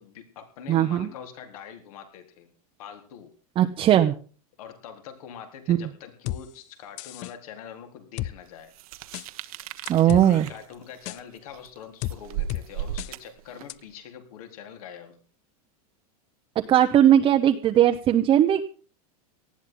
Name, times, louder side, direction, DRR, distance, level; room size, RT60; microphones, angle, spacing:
voice 1, 0.0-2.5 2.8-3.3 4.6-8.7 10.0-15.2, left 8 dB, 70° left, 5 dB, 4.0 m, -44 dB
voice 2, 0.7-1.1 3.6-4.1 5.7-5.8 9.9-10.5 16.7-18.6, right 11 dB, 25° right, 5 dB, 1.0 m, -19 dB
sound 1, 6.3-6.4 7.0-7.3 8.2-8.3 9.1-9.3 9.9-10.3 11.1-11.2 12.0-12.2 12.5-12.6 13.0-13.1 13.7-13.8, left 15 dB, 40° left, 0.6 m, -31 dB
sound 2, 8.7-13.9, right 10 dB, 70° right, 1.3 m, -37 dB
19.0 x 14.0 x 3.9 m, 0.40 s
supercardioid pair, 145°, 19 cm